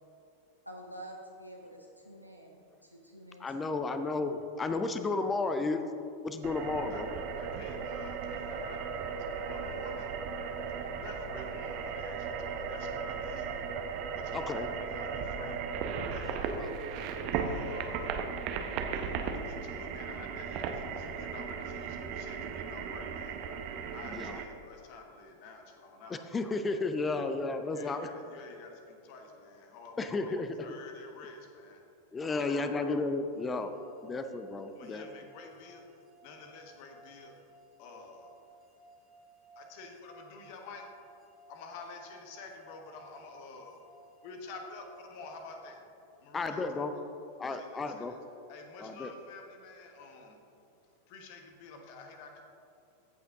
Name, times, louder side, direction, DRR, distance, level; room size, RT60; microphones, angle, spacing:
voice 1, 0.7-3.8, right 1 dB, 90° left, 1 dB, 0.7 m, -48 dB
voice 2, 3.4-5.8 6.2-7.1 14.3-14.7 16.6-16.7 24.1-24.4 26.1-28.1 30.0-30.6 32.1-33.7 34.0-35.1 46.3-46.9 47.4-48.1 48.8-49.1, left 3 dB, 15° left, 8 dB, 0.5 m, -33 dB
sound 1, 6.4-24.4, right 6 dB, 45° right, 0.8 m, -36 dB
voice 3, 7.4-10.1 10.8-13.7 14.1-15.6 16.1-16.8 17.3-18.2 18.9-23.4 23.9-26.4 27.2-27.4 27.7-31.8 32.3-32.7 34.8-35.8 36.2-37.4 37.8-38.3 39.5-40.8 41.5-43.8 44.2-45.8 46.2-46.6 47.5-48.2 48.5-50.4 51.1-52.4, left 3 dB, 45° left, 3 dB, 1.3 m, -49 dB
sound 2, 33.4-46.3, right 2 dB, 20° right, 2.1 m, -59 dB
15.0 x 5.8 x 3.7 m, 2.7 s
figure-of-eight pair, 90°, 0 cm